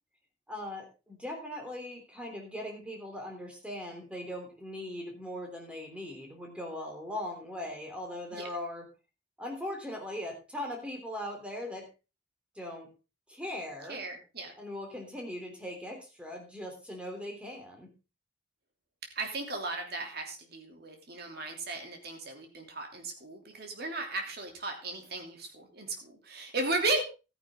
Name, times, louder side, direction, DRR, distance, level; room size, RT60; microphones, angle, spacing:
voice 1, 0.5-8.8 9.4-11.9 12.5-12.9 13.3-14.0 14.6-17.9, left 1 dB, 5° right, 2 dB, 3.3 m, -40 dB
voice 2, 13.9-14.5 19.1-27.0, right 2 dB, 50° right, 3 dB, 2.9 m, -35 dB
13.5 x 9.9 x 3.7 m, 0.30 s
head